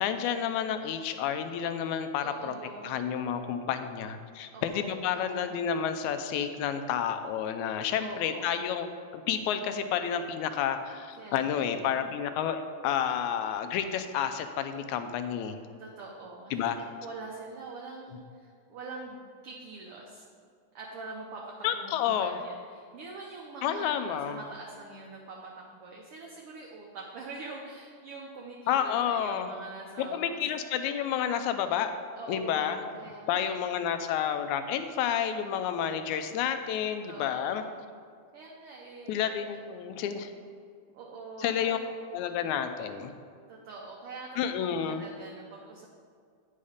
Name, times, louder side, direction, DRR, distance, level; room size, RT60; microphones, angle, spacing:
voice 1, 0.0-2.5 2.8-8.9 9.1-15.6 16.5-16.8 21.6-22.4 23.6-24.4 28.7-29.5 30.0-31.9 32.3-32.8 33.3-37.6 39.1-40.3 41.4-41.8 42.1-43.1 44.4-45.1, left 8 dB, 80° left, 9 dB, 2.0 m, -30 dB
voice 2, 2.2-2.9 4.5-5.6 8.0-8.6 11.2-11.9 15.8-16.6 17.0-20.2 20.7-30.4 32.1-33.8 37.1-37.8 38.3-39.4 40.9-41.8 43.5-45.9, right 3 dB, 70° right, -2 dB, 1.5 m, -44 dB
9.3 x 5.6 x 5.0 m, 2.2 s
omnidirectional pair, 3.4 m